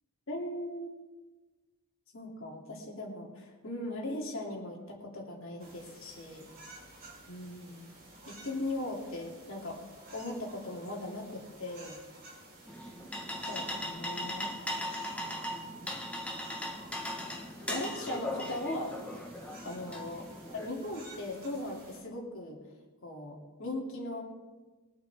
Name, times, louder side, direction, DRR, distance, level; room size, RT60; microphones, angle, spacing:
voice 1, 0.3-0.9 2.1-6.5 7.3-7.9 8.3-9.8 10.1-12.0 13.4-14.5 15.2-15.9 17.2-17.3 17.7-18.9 19.6-20.2 20.5-22.6 23.0-24.2, left 1 dB, 60° left, -1 dB, 3.0 m, -39 dB
sound 1, 5.6-22.0, right 2 dB, 45° right, 4.4 m, -53 dB
sound 2, 12.7-20.7, left 1 dB, 5° left, 1.4 m, -38 dB
22.5 x 8.7 x 3.6 m, 1.3 s
head